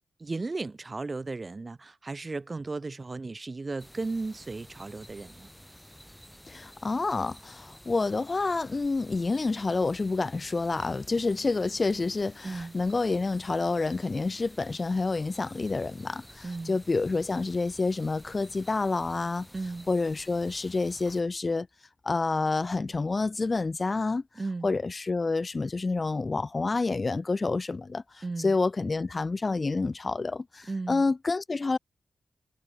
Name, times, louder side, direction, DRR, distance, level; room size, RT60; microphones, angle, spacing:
voice 1, 0.2-5.5 12.4-12.7 16.4-16.8 19.5-19.9 24.4-24.7 28.2-28.5 30.7-31.1, right 3 dB, 35° right, 0.7 m, -35 dB
sound 1, 3.8-21.2, equal, 5° left, 1.7 m, -51 dB
voice 2, 6.5-19.5 19.9-21.7 22.1-24.2 24.6-28.0 28.4-31.8, left 3 dB, 40° left, 0.4 m, -28 dB
cardioid pair, 75°, 0 cm